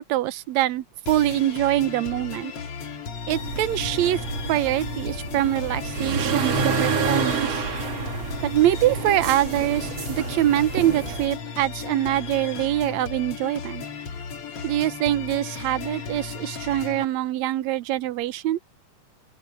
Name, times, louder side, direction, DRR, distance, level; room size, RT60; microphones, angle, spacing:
voice 1, 0.0-2.5 3.3-4.2 4.5-7.6 8.4-13.9 14.6-18.6, right 14 dB, 65° right, 2.0 m, -24 dB
sound 1, 1.1-17.0, left 6 dB, 50° left, 2.7 m, -35 dB
sound 2, 3.3-11.3, right 5 dB, 50° right, 3.6 m, -28 dB
open air
omnidirectional pair, 3.7 m